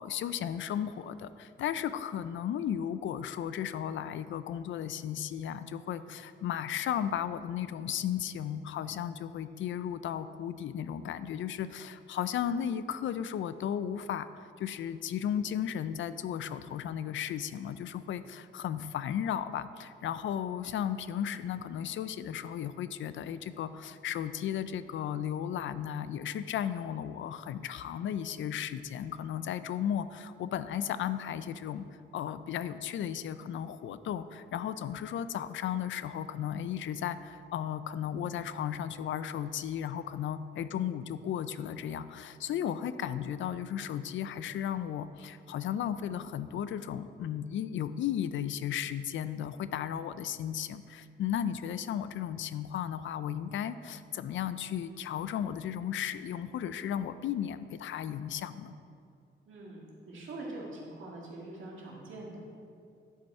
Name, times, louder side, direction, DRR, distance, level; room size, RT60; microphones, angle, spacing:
voice 1, 0.0-14.3 14.6-31.9 32.1-58.7, left 9 dB, 75° left, 13 dB, 0.4 m, -35 dB
voice 2, 59.5-62.4, right 2 dB, 80° right, -3 dB, 1.9 m, -43 dB
10.5 x 5.4 x 4.3 m, 2.4 s
cardioid pair, 100°, 20 cm